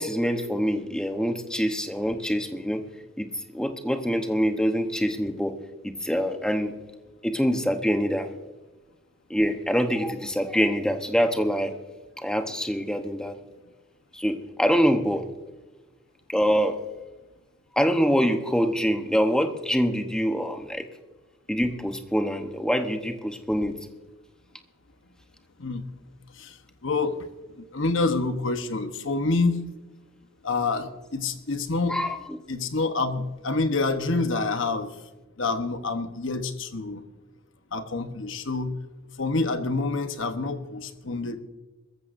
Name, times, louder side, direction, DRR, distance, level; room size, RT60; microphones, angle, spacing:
voice 1, 0.0-2.8 3.2-3.3 3.5-5.5 5.8-6.7 7.2-8.3 9.3-11.7 12.2-13.3 14.1-15.2 16.3-16.8 17.7-20.8 21.5-23.8 31.9-32.2, equal, 5° left, 6 dB, 0.9 m, -25 dB
voice 2, 26.3-27.3 27.5-29.7 30.4-32.0 32.5-35.0 35.4-37.0 37.7-38.8 39.2-41.4, left 3 dB, 65° left, 8 dB, 1.1 m, -27 dB
22.0 x 14.5 x 2.6 m, 1.2 s
head